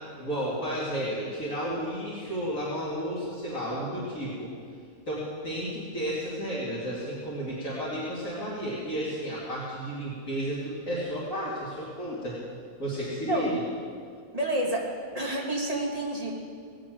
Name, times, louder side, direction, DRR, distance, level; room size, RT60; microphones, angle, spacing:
voice 1, 0.2-4.5 5.1-12.4 12.8-13.6, equal, 70° left, -8 dB, 2.9 m, -32 dB
voice 2, 14.3-14.9 15.1-16.3, right 1 dB, 25° right, -3 dB, 2.3 m, -29 dB
18.0 x 7.7 x 7.7 m, 2.1 s
omnidirectional pair, 1.5 m